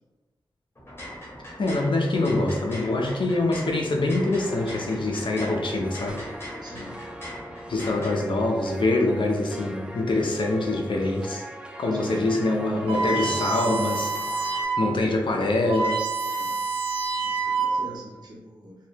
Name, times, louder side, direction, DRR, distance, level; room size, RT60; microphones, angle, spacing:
sound 1, 0.8-8.1, left 1 dB, 30° left, 1.0 m, -40 dB
voice 1, 1.6-6.2 7.7-11.4 11.8-14.1 14.4-16.0, left 2 dB, 70° left, 1 dB, 0.5 m, -24 dB
sound 2, 4.4-14.6, right 1 dB, 10° right, 0.3 m, -41 dB
voice 2, 6.6-6.9 11.9-12.2 16.3-16.5 17.2-18.8, equal, 55° right, -4 dB, 0.8 m, -43 dB
sound 3, 12.9-14.9 15.3-15.4 15.6-18.0, right 4 dB, 80° right, 0.5 m, -27 dB
2.7 x 2.0 x 3.3 m, 1.2 s
wide cardioid pair, 70°, 9 cm